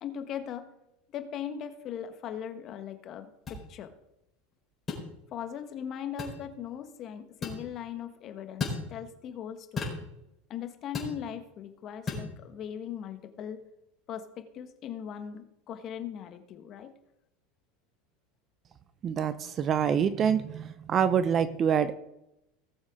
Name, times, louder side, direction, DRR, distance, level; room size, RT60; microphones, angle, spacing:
voice 1, 0.0-0.7 1.1-3.9 5.3-10.0 10.5-13.6 14.1-16.9, left 9 dB, 45° left, 8 dB, 1.4 m, -39 dB
sound 1, 3.5-3.6 4.9-5.1 6.2-6.4 7.4-7.6 8.6-8.8 9.8-10.0 10.9-11.2 12.1-12.3, left 4 dB, 30° left, 4.3 m, -33 dB
voice 2, 19.0-21.9, right 8 dB, 40° right, 13 dB, 0.7 m, -26 dB
18.0 x 7.3 x 3.7 m, 0.85 s
hypercardioid pair, 95°, 0 cm